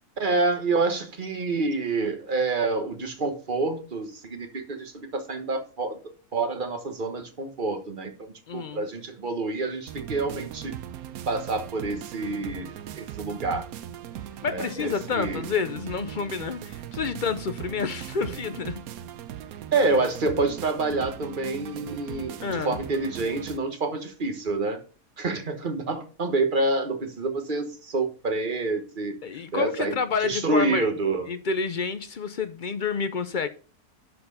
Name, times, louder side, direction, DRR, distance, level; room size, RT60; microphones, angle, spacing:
voice 1, 0.2-6.0 6.3-10.7 11.3-13.7 14.4-15.4 19.7-24.8 25.2-29.2 29.5-30.0 30.2-31.2, right 3 dB, 35° right, 1.4 m, -27 dB
voice 2, 8.5-8.8 14.4-18.8 22.4-22.8 29.2-30.9 31.3-33.5, left 5 dB, 60° left, 0.5 m, -29 dB
sound 1, 9.9-23.6, right 10 dB, 75° right, 1.1 m, -39 dB
11.0 x 4.4 x 5.4 m
omnidirectional pair, 1.6 m